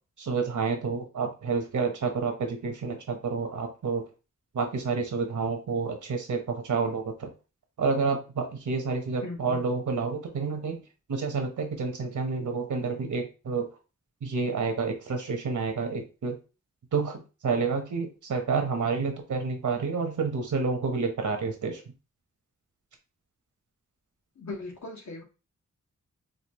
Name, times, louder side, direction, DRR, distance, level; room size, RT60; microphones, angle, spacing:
voice 1, 0.2-4.0 4.5-7.3 7.8-10.8 11.1-13.7 14.2-16.4 16.9-21.8, right 4 dB, 85° right, 4 dB, 1.0 m, -29 dB
voice 2, 9.2-9.6 24.3-25.2, left 3 dB, 70° left, 0 dB, 1.3 m, -38 dB
5.1 x 2.4 x 3.0 m, 0.32 s
wide cardioid pair, 115°, 29 cm